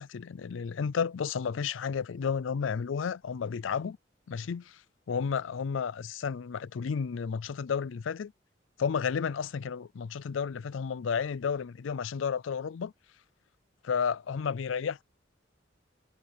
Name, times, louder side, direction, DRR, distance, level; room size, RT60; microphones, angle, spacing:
voice 1, 0.0-4.0 4.3-4.8 5.1-8.3 8.8-12.9 13.8-15.0, left 6 dB, 75° left, 0.4 m, -32 dB
head